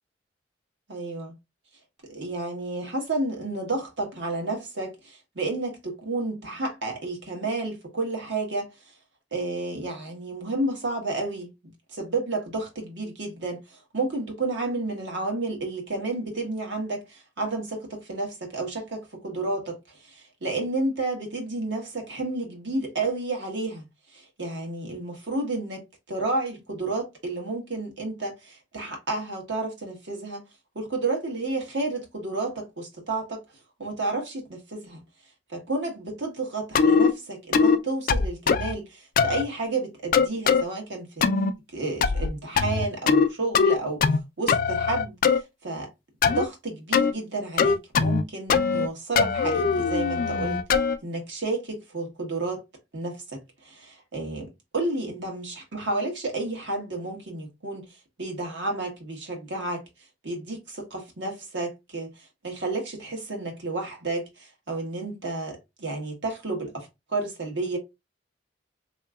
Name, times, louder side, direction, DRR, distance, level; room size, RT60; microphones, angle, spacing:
voice 1, 0.9-1.3 2.0-8.7 9.3-11.5 11.9-30.4 30.7-33.4 33.8-35.0 35.5-41.3 41.7-45.9 46.3-50.6 51.0-52.6 52.9-57.9 58.2-59.8 60.2-67.8, right 2 dB, 75° right, 1.2 m, -31 dB
sound 1, 36.7-37.1 37.5-37.8 38.1-38.7 39.2-39.4 40.1-40.6 41.2-41.5 42.0-42.3 42.6-43.3 43.5-44.2 44.5-45.4 46.2-46.5 46.9-47.1 47.6-48.2 48.5-48.9 49.2-51.0, left 5 dB, 50° left, 0.3 m, -21 dB
3.6 x 2.8 x 2.3 m
head